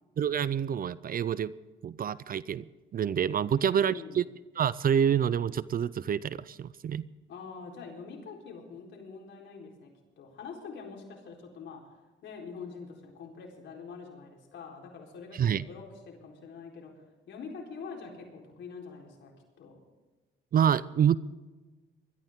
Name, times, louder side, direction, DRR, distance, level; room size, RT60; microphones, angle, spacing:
voice 1, 0.2-1.5 1.8-2.7 2.9-4.3 4.6-7.1 15.3-15.7 20.5-21.2, right 8 dB, 45° right, 18 dB, 0.5 m, -27 dB
voice 2, 3.5-4.2 7.3-11.8 12.2-16.9 17.3-19.3 19.6-19.8, left 5 dB, 70° left, 0 dB, 4.2 m, -45 dB
21.0 x 13.5 x 3.7 m, 1.2 s
cardioid pair, 90°, 20 cm